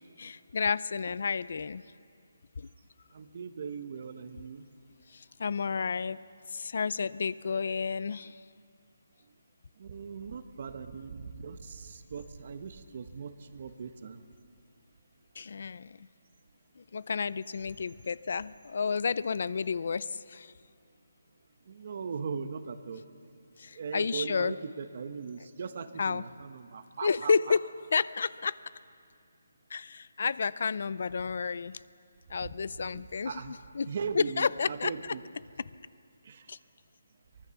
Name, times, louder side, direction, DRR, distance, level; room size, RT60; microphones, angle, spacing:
voice 1, 0.2-1.8 2.6-2.7 5.1-6.2 6.5-8.4 15.4-16.1 16.8-20.5 23.6-24.5 26.0-26.2 27.0-28.6 29.7-31.8 32.3-33.9 34.1-35.1 36.5-36.6, left 5 dB, 50° left, 19 dB, 0.5 m, -31 dB
voice 2, 3.1-4.6 9.8-14.2 21.6-23.0 23.7-27.5 32.4-32.5 32.9-33.5 33.9-35.2 36.2-36.5, right 5 dB, 40° right, 10 dB, 1.2 m, -39 dB
23.5 x 20.5 x 7.1 m, 2.3 s
hypercardioid pair, 170°, 0 cm